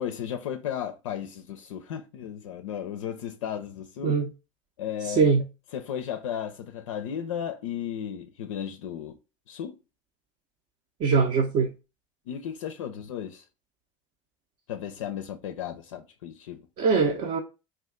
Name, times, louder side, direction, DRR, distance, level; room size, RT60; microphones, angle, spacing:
voice 1, 0.0-4.2 4.8-5.3 5.7-9.2 9.5-9.8 12.3-13.4 14.7-16.7, left 9 dB, 70° left, 0.4 m, -34 dB
voice 2, 5.0-5.4 11.0-11.7 16.8-17.4, right 5 dB, 45° right, 0.5 m, -22 dB
2.5 x 2.4 x 3.5 m
hypercardioid pair, 75°, 17 cm